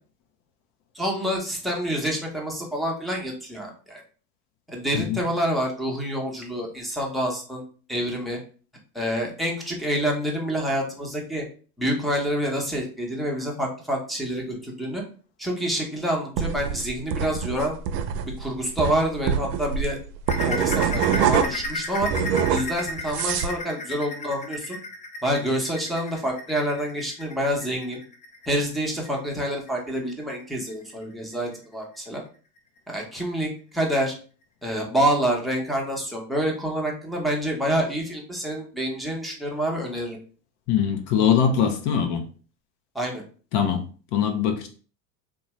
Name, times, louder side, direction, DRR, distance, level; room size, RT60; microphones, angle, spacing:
voice 1, 0.9-4.0 4.7-7.6 7.9-8.4 8.9-11.4 11.8-15.0 15.4-17.8 18.4-20.0 20.4-22.1 22.5-24.8 25.2-28.0 28.5-32.2 32.9-34.1 34.6-40.2 42.9-43.2, equal, ahead, 0.8 m, -27 dB
sound 1, 16.4-21.7 22.0-23.6, right 7 dB, 75° right, 0.5 m, -25 dB
sound 2, 20.3-31.5 31.9-32.2 32.6-32.7 33.2-33.3, left 2 dB, 15° left, 0.3 m, -34 dB
voice 2, 40.7-42.2 43.5-43.8 44.1-44.7, left 8 dB, 50° left, 0.7 m, -22 dB
2.6 x 2.3 x 3.1 m
hypercardioid pair, 90°, 49 cm